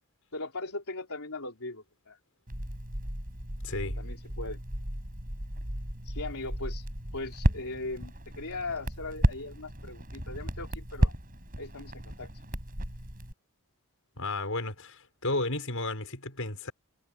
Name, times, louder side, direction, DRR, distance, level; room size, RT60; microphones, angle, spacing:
voice 1, 0.3-2.2 4.0-4.6 6.0-6.9 7.1-11.1 11.6-12.4, left 2 dB, 80° left, 3.5 m, -39 dB
Crackle, 2.5-13.3, equal, 40° right, 6.5 m, -33 dB
voice 2, 3.6-4.0 14.2-16.7, left 2 dB, 65° left, 7.1 m, -33 dB
head